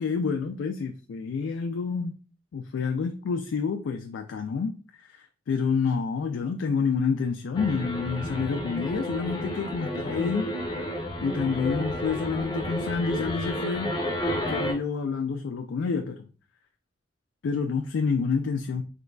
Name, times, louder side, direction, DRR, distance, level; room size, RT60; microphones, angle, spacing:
voice 1, 0.0-2.1 2.5-10.5 11.2-13.9 14.5-16.3 17.4-18.8, left 5 dB, 90° left, 5 dB, 0.3 m, -28 dB
sound 1, 7.5-14.7, equal, 25° left, 0.5 m, -31 dB
3.8 x 3.0 x 2.2 m, 0.37 s
head